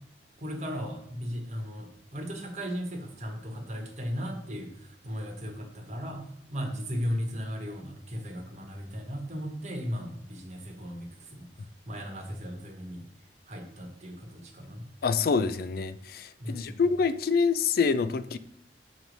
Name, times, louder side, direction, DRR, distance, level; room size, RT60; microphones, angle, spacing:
voice 1, 0.4-13.1 13.5-14.9 16.4-16.8, equal, 40° right, 2 dB, 1.2 m, -36 dB
voice 2, 15.0-18.4, left 5 dB, 60° left, 13 dB, 0.4 m, -26 dB
7.0 x 3.1 x 5.2 m, 0.72 s
head